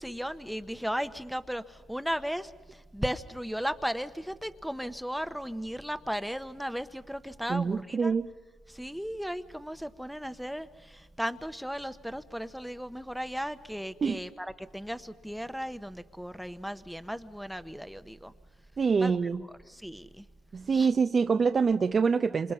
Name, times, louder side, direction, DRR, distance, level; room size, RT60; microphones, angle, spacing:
voice 1, 0.0-2.5 2.9-8.1 8.7-18.3 19.0-19.1 19.7-20.2 20.7-20.9, equal, ahead, 11 dB, 1.0 m, -36 dB
voice 2, 7.5-8.3 14.0-14.2 18.8-19.4 20.5-22.5, right 5 dB, 40° right, 7 dB, 0.7 m, -25 dB
27.5 x 26.5 x 5.7 m, 1.3 s
cardioid pair, 90°, 0 cm